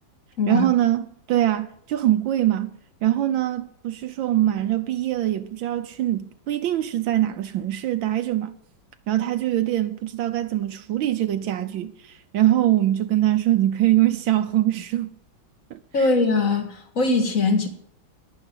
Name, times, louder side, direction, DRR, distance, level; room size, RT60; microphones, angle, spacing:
voice 1, 0.5-2.7 3.0-8.5 9.1-15.1 15.7-16.1, right 13 dB, 80° right, 1.5 m, -23 dB
voice 2, 15.9-17.7, left 3 dB, 45° left, 2.2 m, -21 dB
11.0 x 10.5 x 9.9 m
omnidirectional pair, 2.1 m